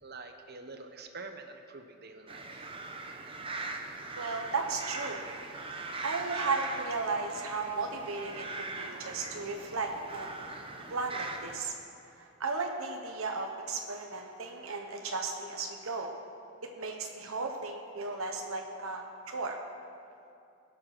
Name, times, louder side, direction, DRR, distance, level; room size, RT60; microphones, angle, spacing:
voice 1, 0.0-2.7, right 3 dB, 45° right, 6 dB, 1.1 m, -46 dB
sound 1, 2.3-11.6, right 3 dB, 25° right, 0.9 m, -41 dB
voice 2, 4.1-5.7 6.0-10.4 10.9-11.8 12.0-16.1 16.8-19.6, right 4 dB, 75° right, 3 dB, 1.1 m, -35 dB
21.0 x 7.5 x 6.0 m, 2.5 s
head